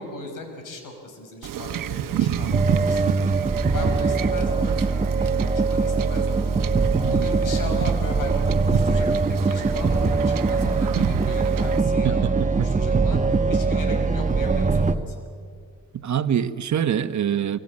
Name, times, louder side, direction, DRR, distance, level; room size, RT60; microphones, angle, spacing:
voice 1, 0.0-3.0 3.7-6.3 7.0-12.3 12.5-13.2 13.5-15.2, left 2 dB, 80° left, 4 dB, 5.6 m, -37 dB
Wind / Ocean / Boat Water vehicle, 1.4-11.8, right 10 dB, 80° right, 1.1 m, -30 dB
sound 1, 2.5-15.0, right 4 dB, 25° right, 1.2 m, -22 dB
voice 2, 11.9-12.7 15.9-17.6, right 9 dB, 60° right, 11 dB, 1.2 m, -25 dB
25.5 x 24.0 x 8.7 m, 2.1 s
cardioid pair, 90°, 32 cm